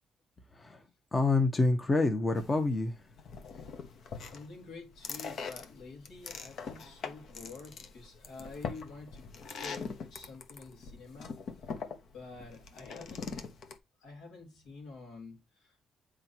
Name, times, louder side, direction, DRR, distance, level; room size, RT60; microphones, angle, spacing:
voice 1, 0.5-0.8 1.1-3.1, left 3 dB, 25° left, 1.2 m, -27 dB
sound 1, 2.3-13.8, left 5 dB, 65° left, 1.1 m, -43 dB
voice 2, 4.3-9.3 9.6-11.4 12.1-13.4 14.0-15.7, left 3 dB, 80° left, 3.5 m, -48 dB
7.7 x 5.0 x 2.9 m
cardioid pair, 90°, 0 cm